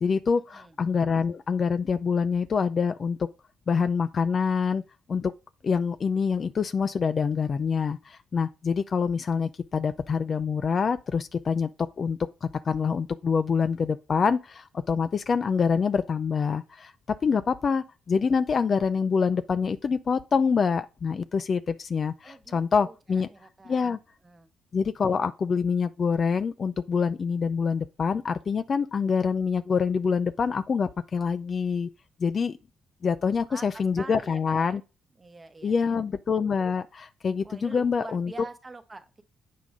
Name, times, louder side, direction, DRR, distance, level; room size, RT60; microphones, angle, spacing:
voice 1, 0.0-3.2 3.7-4.8 5.1-5.3 5.6-11.7 12.0-16.9 17.2-23.3 23.7-24.0 24.7-31.9 32.2-32.6 33.0-34.8 35.6-38.3, left 5 dB, 45° left, 0.4 m, -26 dB
voice 2, 22.2-23.9 24.2-24.5 33.2-34.8 35.2-36.0 37.4-39.2, right 3 dB, 25° right, 0.9 m, -46 dB
7.5 x 5.1 x 3.6 m
cardioid pair, 90°, 0 cm